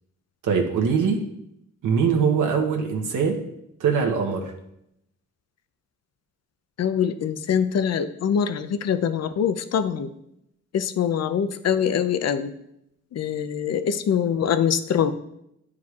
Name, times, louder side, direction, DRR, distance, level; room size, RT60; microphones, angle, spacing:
voice 1, 0.4-1.2 1.8-3.4 3.8-4.5, right 6 dB, 80° right, 1 dB, 0.9 m, -22 dB
voice 2, 6.8-10.1 10.7-12.5 13.1-15.1, left 8 dB, 55° left, 11 dB, 0.5 m, -24 dB
9.3 x 4.8 x 2.4 m, 0.79 s
cardioid pair, 75°, 31 cm